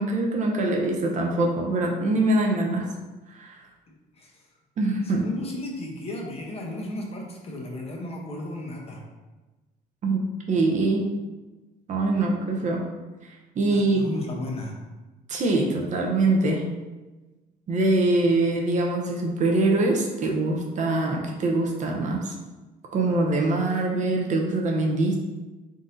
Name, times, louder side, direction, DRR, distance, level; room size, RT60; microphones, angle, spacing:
voice 1, 0.0-2.8 3.3-3.6 4.8-5.2 10.0-11.0 11.9-12.8 13.2-14.1 15.3-16.6 17.7-22.3 22.9-25.2, right 2 dB, 45° right, 0 dB, 0.8 m, -23 dB
voice 2, 5.0-9.0 13.7-14.8, left 1 dB, 35° left, -1 dB, 0.9 m, -34 dB
3.8 x 2.7 x 3.8 m, 1.2 s
cardioid pair, 110°, 17 cm